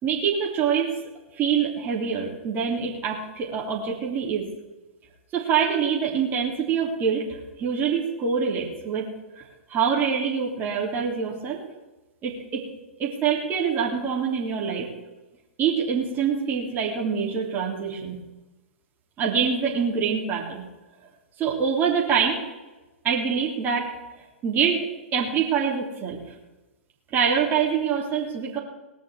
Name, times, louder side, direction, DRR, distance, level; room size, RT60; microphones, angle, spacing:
voice 1, 0.0-0.9 1.4-4.5 5.3-9.1 9.4-9.5 9.7-11.6 12.2-12.6 13.0-14.9 15.6-18.2 19.2-20.6 21.4-22.4 23.0-23.9 24.4-24.8 25.1-26.2 27.1-28.6, right 7 dB, 30° right, -2 dB, 3.4 m, -25 dB
19.0 x 6.4 x 8.4 m, 1.1 s
hypercardioid pair, 120°, 7 cm